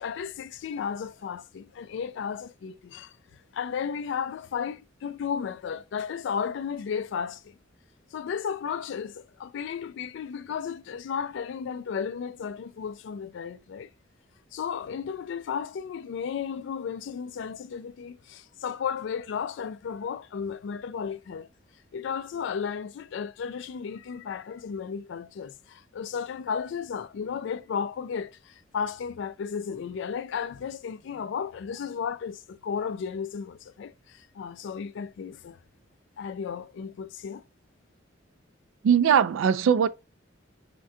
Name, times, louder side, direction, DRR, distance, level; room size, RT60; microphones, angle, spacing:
voice 1, 0.0-3.1 3.5-7.6 8.1-13.9 14.5-21.5 21.9-35.6 36.2-37.4, left 7 dB, 65° left, 0.3 m, -34 dB
voice 2, 38.8-39.9, right 8 dB, 80° right, 0.3 m, -20 dB
3.6 x 2.2 x 2.5 m
head